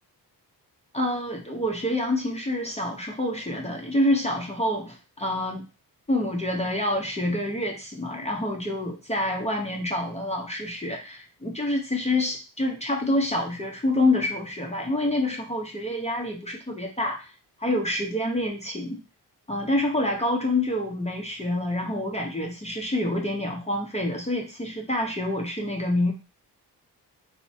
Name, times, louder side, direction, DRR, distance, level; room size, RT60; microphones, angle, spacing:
voice 1, 0.9-5.7 6.1-17.3 17.6-19.0 19.5-26.1, left 1 dB, 15° left, 0 dB, 0.6 m, -27 dB
3.0 x 2.1 x 2.6 m, 0.31 s
cardioid pair, 60°, 41 cm